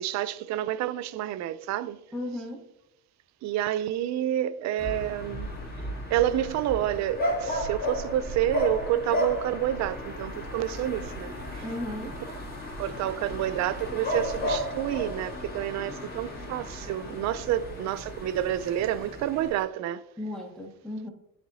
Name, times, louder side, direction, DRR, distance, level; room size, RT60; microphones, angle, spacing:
voice 1, 0.0-2.0 3.4-5.5 6.1-11.6 12.8-20.0, right 12 dB, 55° right, 0.4 m, -29 dB
voice 2, 2.1-2.6 11.6-12.1 20.2-21.1, left 1 dB, ahead, 1.1 m, -35 dB
sound 1, 4.8-19.6, left 1 dB, 25° left, 2.0 m, -34 dB
12.0 x 4.3 x 2.8 m
cardioid pair, 160°, 34 cm